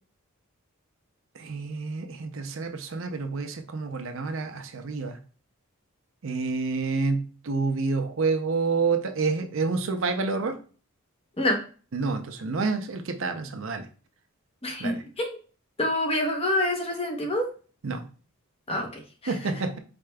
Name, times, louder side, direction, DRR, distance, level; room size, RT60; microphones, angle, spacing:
voice 1, 1.3-5.2 6.2-10.6 11.9-13.9 14.8-15.0 17.8-18.0 19.3-19.8, right 4 dB, 60° right, 6 dB, 0.5 m, -28 dB
voice 2, 14.6-15.4 15.8-17.5 18.7-19.4, left 1 dB, 25° left, 2 dB, 0.8 m, -27 dB
4.9 x 4.2 x 2.2 m, 0.39 s
head